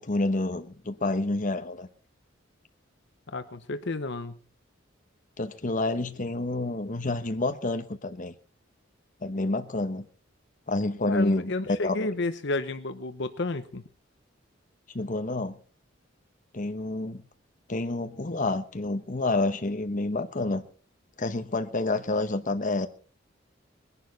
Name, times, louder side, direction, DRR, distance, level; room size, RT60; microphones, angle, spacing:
voice 1, 0.0-1.9 5.4-8.3 9.2-10.0 10.7-11.9 14.9-15.6 16.5-17.2 17.7-20.6 21.2-22.9, left 2 dB, 40° left, 1.1 m, -28 dB
voice 2, 3.3-4.4 11.1-13.8, left 2 dB, 60° left, 0.9 m, -31 dB
21.0 x 11.0 x 4.1 m
head